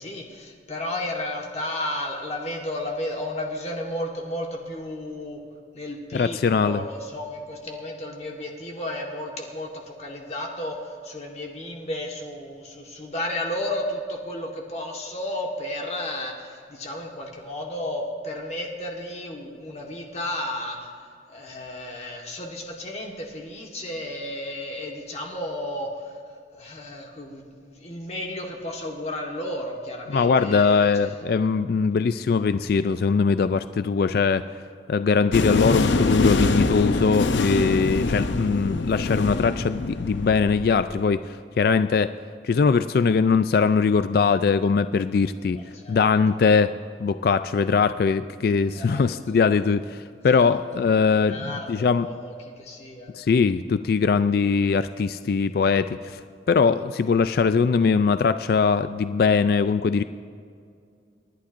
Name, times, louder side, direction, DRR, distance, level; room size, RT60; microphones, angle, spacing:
voice 1, 0.0-5.4 5.7-20.9 21.3-26.1 26.5-31.1 45.5-46.1 48.7-49.4 50.3-53.1, left 1 dB, 35° left, 0 dB, 1.4 m, -33 dB
voice 2, 6.1-6.8 30.1-34.4 34.9-42.1 42.4-45.6 45.9-46.7 47.0-52.1 53.1-56.2 56.5-60.0, left 5 dB, 55° left, 11 dB, 0.3 m, -21 dB
sound 1, 35.3-40.9, left 3 dB, 80° left, 0.7 m, -24 dB
29.0 x 11.5 x 2.6 m, 2.3 s
head